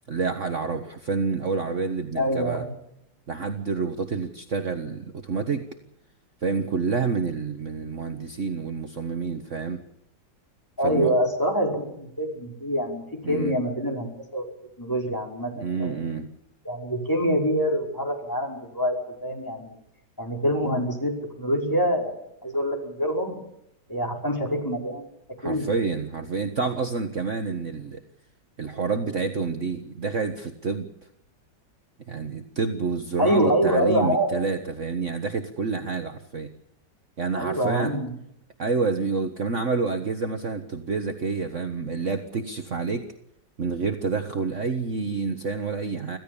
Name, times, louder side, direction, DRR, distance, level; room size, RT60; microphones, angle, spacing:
voice 1, 0.1-2.6 3.3-5.6 6.4-9.8 10.8-11.1 13.2-13.5 15.6-16.3 25.4-28.0 28.6-30.9 32.1-36.5 37.2-38.0 38.6-43.1 43.6-46.2, right 4 dB, 45° right, 6 dB, 1.7 m, -28 dB
voice 2, 2.1-2.7 10.8-14.5 14.8-16.1 16.6-19.0 19.2-19.7 20.2-22.1 22.4-23.4 23.9-25.0 25.4-25.7 33.2-34.3 37.4-38.1, equal, 10° left, 1 dB, 5.4 m, -25 dB
26.5 x 16.0 x 7.1 m, 0.79 s
omnidirectional pair, 1.9 m